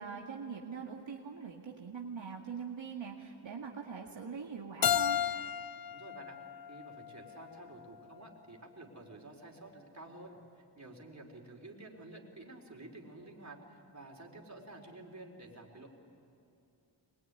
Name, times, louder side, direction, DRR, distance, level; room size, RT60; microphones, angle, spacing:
voice 1, 0.0-5.2, right 6 dB, 75° right, -1 dB, 2.1 m, -42 dB
Keyboard (musical), 4.8-7.6, left 9 dB, 50° left, 0.7 m, -34 dB
voice 2, 5.9-6.4 6.7-15.9, right 2 dB, 35° right, 0 dB, 4.4 m, -51 dB
24.5 x 21.5 x 9.7 m, 2.7 s
wide cardioid pair, 60°, 47 cm